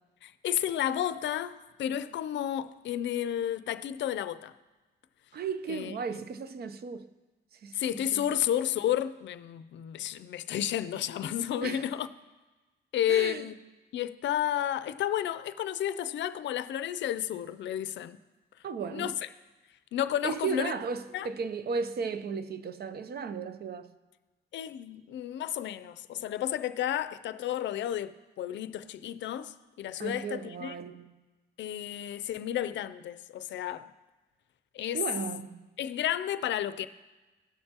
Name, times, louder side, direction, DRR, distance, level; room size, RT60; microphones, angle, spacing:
voice 1, 0.2-4.6 5.7-6.2 7.7-12.1 12.9-13.6 13.9-18.2 18.9-19.3 19.9-20.7 21.1-21.3 24.5-30.8 31.6-33.9 34.7-35.0 35.8-36.9, left 11 dB, 80° left, 0.5 m, -32 dB
voice 2, 5.3-7.1 7.6-7.8 8.1-8.2 11.6-11.9 13.1-13.4 18.6-19.1 20.2-23.9 30.0-31.1 34.9-35.7, right 5 dB, 60° right, 0.6 m, -35 dB
17.0 x 6.6 x 2.9 m
cardioid pair, 90°, 19 cm